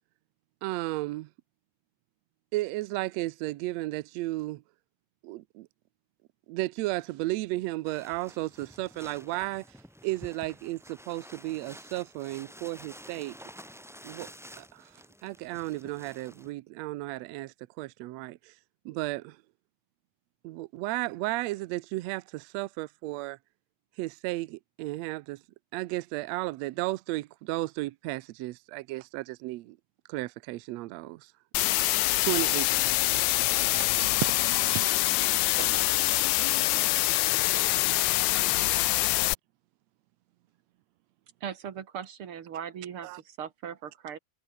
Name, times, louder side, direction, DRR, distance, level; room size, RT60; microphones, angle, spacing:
voice 1, 0.6-1.3 2.5-4.6 5.2-5.7 6.5-9.6 10.0-13.3 14.0-14.3 14.6-14.9 15.2-18.5 18.8-19.4 20.4-23.4 24.0-25.4 25.7-29.8 30.1-31.3 32.2-32.7 33.1-33.2 33.5-34.9 35.5-35.9 37.6-37.7 43.0-43.2, right 19 dB, 90° right, 1.5 m, -34 dB
sound 1, 7.8-16.5, equal, ahead, 3.0 m, -50 dB
sound 2, 31.5-39.3, left 18 dB, 80° left, 1.7 m, -25 dB
voice 2, 41.4-44.2, right 8 dB, 50° right, 2.0 m, -39 dB
omnidirectional pair, 3.9 m